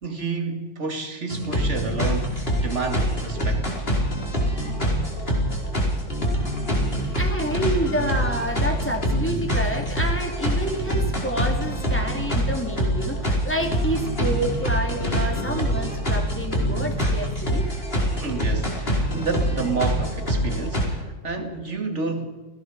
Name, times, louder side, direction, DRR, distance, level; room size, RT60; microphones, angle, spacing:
voice 1, 0.0-3.7 18.0-22.3, right 4 dB, 40° right, 2.7 m, -30 dB
sound 1, 1.3-20.9, equal, 30° left, 4.9 m, -25 dB
voice 2, 6.5-17.7, right 1 dB, 5° left, 3.2 m, -29 dB
28.5 x 18.0 x 5.0 m
omnidirectional pair, 2.0 m